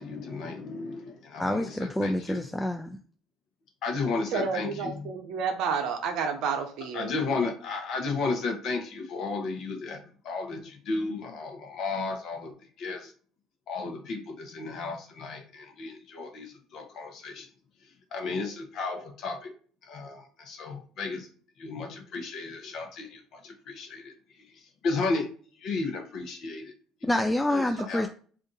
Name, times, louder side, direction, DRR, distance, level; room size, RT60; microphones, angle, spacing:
voice 1, 0.0-2.4 3.8-5.1 6.9-13.1 13.7-17.5 18.1-19.5 19.9-21.3 21.6-24.1 24.8-25.3 25.6-26.7 27.0-27.1 27.5-28.0, left 3 dB, 65° left, 3 dB, 0.9 m, -33 dB
voice 2, 1.4-3.0 27.0-28.1, left 1 dB, 10° left, 5 dB, 0.3 m, -27 dB
voice 3, 4.3-7.1, right 6 dB, 70° right, 5 dB, 0.7 m, -30 dB
2.5 x 2.5 x 3.9 m, 0.43 s
hypercardioid pair, 70°, 0 cm